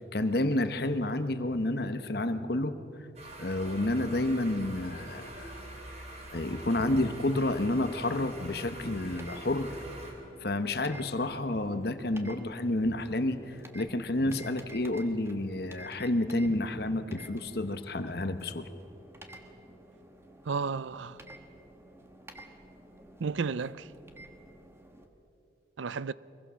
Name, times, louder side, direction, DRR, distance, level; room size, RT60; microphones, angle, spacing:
voice 1, 0.0-2.7 3.4-5.5 6.3-9.8 10.4-18.7, left 1 dB, 55° left, 1.1 m, -30 dB
sound 1, 3.2-10.1, right 1 dB, 35° right, 3.4 m, -45 dB
sound 2, 8.6-25.1, right 1 dB, 15° right, 1.4 m, -52 dB
voice 2, 20.5-21.2 23.2-23.9 25.8-26.1, right 5 dB, 80° right, 0.5 m, -32 dB
23.0 x 22.5 x 6.3 m
head